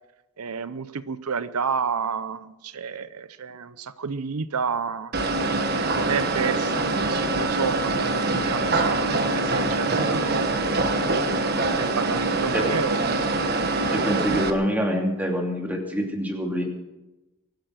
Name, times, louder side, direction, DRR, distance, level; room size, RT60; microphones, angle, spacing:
voice 1, 0.4-10.6 11.7-13.2, right 5 dB, 90° right, 14 dB, 0.7 m, -30 dB
sound 1, 5.1-14.5, right 2 dB, 45° right, 1.3 m, -24 dB
voice 2, 13.9-16.6, equal, 10° right, 0 dB, 2.7 m, -25 dB
23.5 x 9.3 x 6.5 m, 1.0 s
head